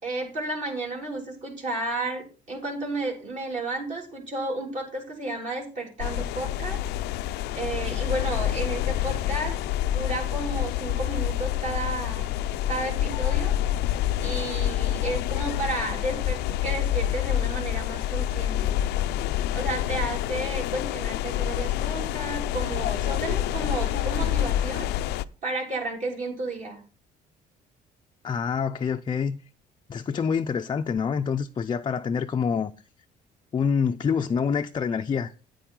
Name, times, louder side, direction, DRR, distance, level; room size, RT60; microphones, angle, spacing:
voice 1, 0.0-6.8 7.5-12.3 12.7-13.5 14.2-18.8 19.5-24.9 25.4-26.8, right 2 dB, 45° right, 3.4 m, -32 dB
sound 1, 6.0-25.2, left 12 dB, 85° left, 0.4 m, -27 dB
voice 2, 28.2-29.4 29.9-32.7 33.5-35.3, left 6 dB, 30° left, 0.4 m, -26 dB
9.2 x 8.5 x 3.8 m
cardioid pair, 110°, 17 cm